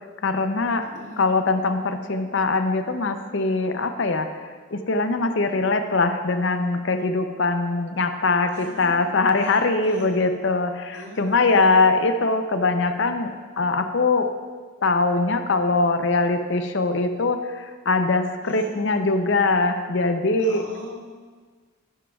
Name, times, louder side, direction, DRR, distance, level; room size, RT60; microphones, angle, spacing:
voice 1, 0.2-0.8 1.2-4.3 4.7-14.3 14.8-20.6, left 3 dB, 60° left, 8 dB, 0.6 m, -22 dB
voice 2, 0.8-1.3 8.5-8.9 9.4-10.2 10.9-11.9 18.4-18.7 20.4-21.0, equal, 65° right, -5 dB, 2.3 m, -41 dB
11.0 x 10.5 x 2.4 m, 1.5 s
head